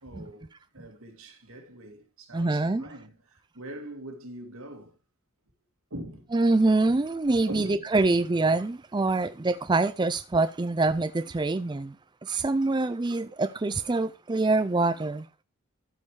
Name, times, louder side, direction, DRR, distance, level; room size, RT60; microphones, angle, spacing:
voice 1, 0.0-5.0 5.9-6.3 6.8-7.0 7.5-8.2, right 1 dB, 85° right, 2.3 m, -43 dB
voice 2, 2.3-2.8 6.3-12.0 12.2-15.3, right 3 dB, 20° right, 0.4 m, -25 dB
13.0 x 5.4 x 4.7 m
head